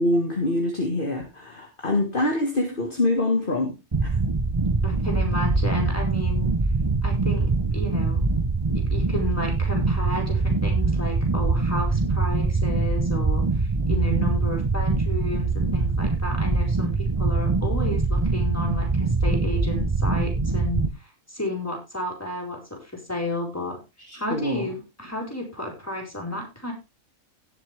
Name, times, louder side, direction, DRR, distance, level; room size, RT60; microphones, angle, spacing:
voice 1, 0.0-3.7 4.0-4.2 24.1-24.7, left 2 dB, 40° left, 2 dB, 2.0 m, -25 dB
sound 1, 3.9-20.9, right 3 dB, 25° right, 0.7 m, -23 dB
voice 2, 4.8-6.5 7.0-8.3 8.7-23.8 24.1-26.7, left 1 dB, 10° left, 0 dB, 4.9 m, -32 dB
18.0 x 7.4 x 3.4 m, 0.25 s
omnidirectional pair, 1.4 m